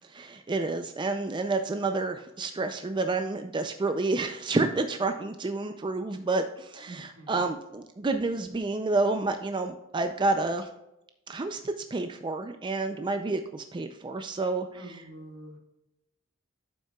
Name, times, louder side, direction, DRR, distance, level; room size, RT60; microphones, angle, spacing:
voice 1, 0.0-10.7 11.3-15.0, right 3 dB, 25° right, 7 dB, 0.4 m, -29 dB
voice 2, 6.9-7.4 14.7-15.6, right 1 dB, 70° right, 1 dB, 1.8 m, -45 dB
9.0 x 7.3 x 2.3 m, 0.88 s
head